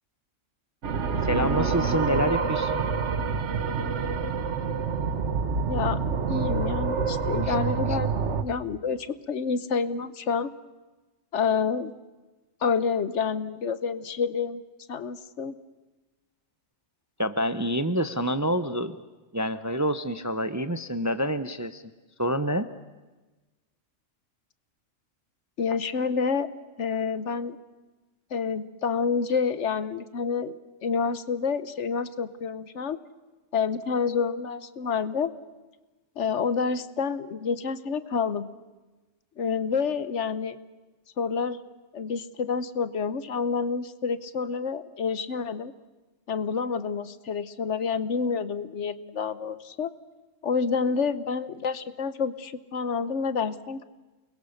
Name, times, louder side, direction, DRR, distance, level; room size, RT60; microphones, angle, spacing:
sound 1, 0.8-8.4, right 5 dB, 65° right, 1.5 m, -27 dB
voice 1, 1.2-2.8 7.5-7.6 7.9-8.0 17.2-19.0 19.3-21.8 22.2-22.7, equal, 20° right, 11 dB, 0.6 m, -27 dB
voice 2, 5.7-8.1 8.4-10.5 11.3-11.9 12.6-14.6 14.9-15.6 25.6-26.5 26.8-27.6 28.3-33.0 33.5-35.3 36.2-38.5 39.4-40.6 41.2-41.6 41.9-45.7 46.3-49.9 50.4-53.8, left 5 dB, 65° left, 14 dB, 1.2 m, -28 dB
29.5 x 21.5 x 6.6 m, 1.2 s
omnidirectional pair, 1.3 m